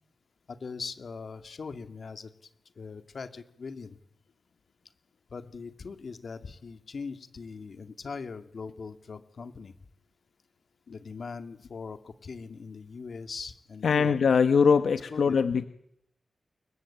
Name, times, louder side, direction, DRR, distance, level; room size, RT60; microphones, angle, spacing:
voice 1, 0.5-2.5 2.8-4.0 5.3-9.7 10.9-14.2 15.1-15.4, left 4 dB, 60° left, 8 dB, 2.3 m, -41 dB
voice 2, 13.8-15.6, left 6 dB, 85° left, 9 dB, 1.1 m, -22 dB
28.5 x 23.0 x 9.0 m, 0.74 s
wide cardioid pair, 120°, 0 cm